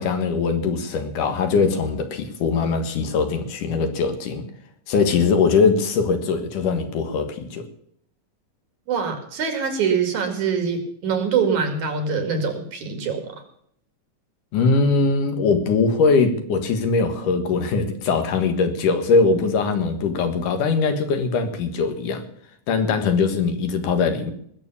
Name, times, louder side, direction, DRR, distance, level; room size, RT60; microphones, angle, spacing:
voice 1, 0.0-4.4 4.9-7.6 14.5-22.2 22.7-24.3, left 4 dB, 70° left, 7 dB, 3.1 m, -21 dB
voice 2, 8.9-13.4, right 6 dB, 65° right, 6 dB, 3.5 m, -24 dB
20.0 x 7.2 x 7.0 m, 0.67 s
omnidirectional pair, 3.8 m